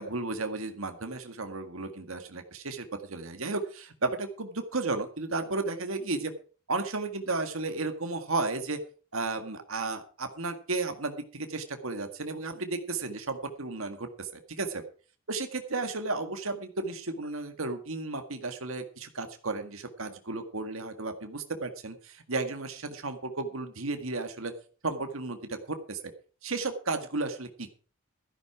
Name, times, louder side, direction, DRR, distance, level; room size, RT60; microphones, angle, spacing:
voice 1, 0.0-6.3 6.7-8.8 9.1-14.8 15.3-24.5 24.8-26.1 26.4-27.7, right 3 dB, 75° right, 7 dB, 1.8 m, -33 dB
13.5 x 11.0 x 4.8 m, 0.39 s
head